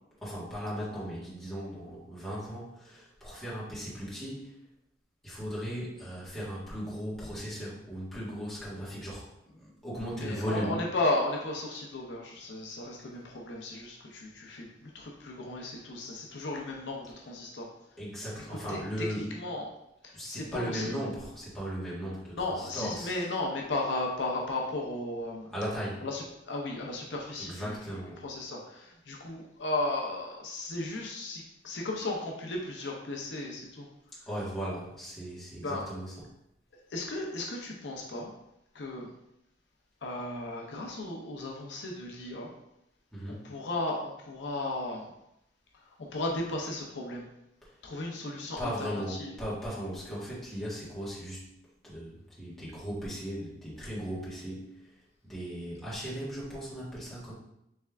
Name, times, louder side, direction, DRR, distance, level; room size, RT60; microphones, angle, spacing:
voice 1, 0.2-4.5 5.2-10.8 18.0-19.3 20.1-23.2 25.5-26.0 27.4-28.2 34.3-36.2 43.1-43.5 47.6-47.8 48.3-51.5 51.8-57.3, equal, 5° left, -10 dB, 1.5 m, -37 dB
voice 2, 10.2-17.7 18.7-18.8 19.1-19.7 20.0-20.9 22.4-25.5 26.0-27.8 28.2-33.9 35.6-35.8 36.9-38.3 38.7-39.1 40.0-42.5 43.4-45.1 45.8-47.3 47.8-49.3, left 2 dB, 75° left, 0 dB, 0.6 m, -35 dB
3.5 x 3.3 x 3.4 m, 0.82 s
head